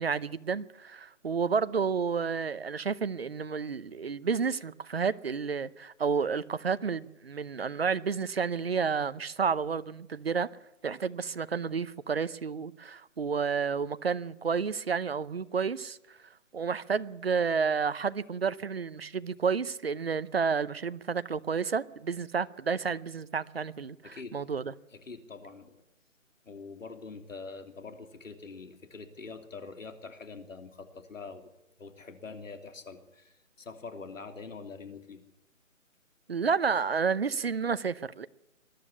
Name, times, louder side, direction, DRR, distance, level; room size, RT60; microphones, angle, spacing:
voice 1, 0.0-10.5 10.8-16.0 16.5-24.7 36.3-38.3, right 5 dB, 50° right, 0.8 m, -30 dB
voice 2, 24.0-24.4 24.9-25.8 26.4-31.5 31.8-35.2, left 4 dB, 70° left, 3.2 m, -44 dB
22.0 x 12.0 x 10.0 m
hypercardioid pair, 170°, 40 cm